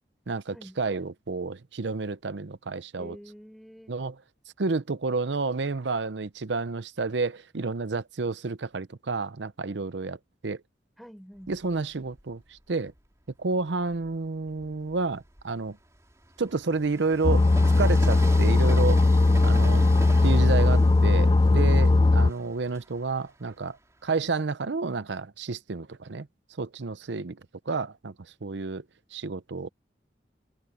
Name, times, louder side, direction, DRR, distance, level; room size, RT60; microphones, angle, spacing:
voice 1, 0.3-3.2 3.9-4.2 4.6-10.2 10.4-10.6 11.5-12.9 13.4-15.8 16.4-17.5 17.8-19.0 19.4-19.9 20.2-23.8 24.0-26.3 26.6-27.4 27.7-28.1 28.4-28.8 29.1-29.7, right 4 dB, 80° right, 0.7 m, -30 dB
voice 2, 3.0-4.0 11.0-11.5, equal, ahead, 5.1 m, -47 dB
Train, 11.4-13.1 13.7-24.3, right 1 dB, 15° right, 3.2 m, -44 dB
sound 1, 17.2-22.3, left 2 dB, 25° left, 0.3 m, -19 dB
head